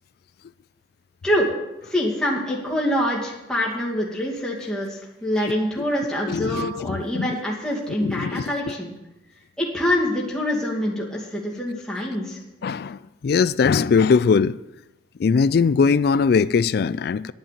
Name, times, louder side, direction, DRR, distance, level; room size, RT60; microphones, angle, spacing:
voice 1, 1.9-8.9 9.6-12.4, equal, 5° left, 2.4 m, -25 dB
voice 2, 6.2-7.3 8.0-8.7 12.6-14.6 15.2-17.3, left 5 dB, 55° left, 0.3 m, -21 dB
10.5 x 9.5 x 6.7 m
head